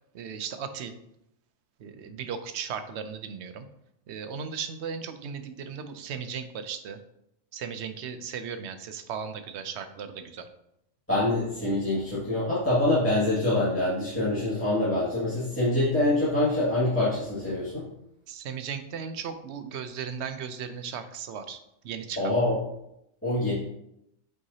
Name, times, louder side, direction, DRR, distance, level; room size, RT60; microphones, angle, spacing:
voice 1, 0.1-0.9 1.8-3.7 4.1-7.0 7.5-10.5 18.3-22.3, right 7 dB, 65° right, 9 dB, 0.8 m, -36 dB
voice 2, 11.1-17.9 22.2-22.5 23.2-23.5, left 1 dB, 10° left, -11 dB, 2.0 m, -25 dB
7.8 x 4.6 x 2.8 m, 0.80 s
omnidirectional pair, 1.4 m